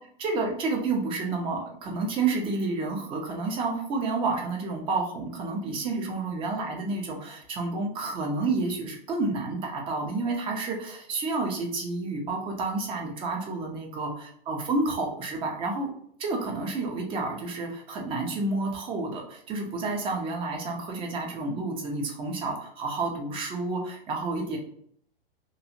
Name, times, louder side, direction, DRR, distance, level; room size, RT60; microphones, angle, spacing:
voice 1, 0.2-15.9 16.2-24.6, right 3 dB, 20° right, 1 dB, 0.5 m, -30 dB
2.6 x 2.5 x 2.8 m, 0.64 s
hypercardioid pair, 130°, 30 cm